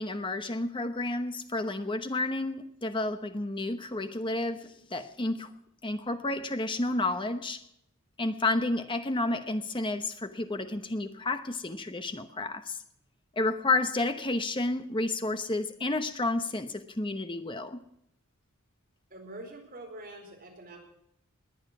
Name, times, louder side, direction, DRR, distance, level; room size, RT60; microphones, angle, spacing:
voice 1, 0.0-5.5 5.8-7.6 8.2-12.8 13.4-17.8, left 2 dB, 20° left, 0.9 m, -31 dB
voice 2, 19.1-20.8, right 1 dB, 40° right, 4.6 m, -45 dB
20.5 x 9.1 x 6.0 m
head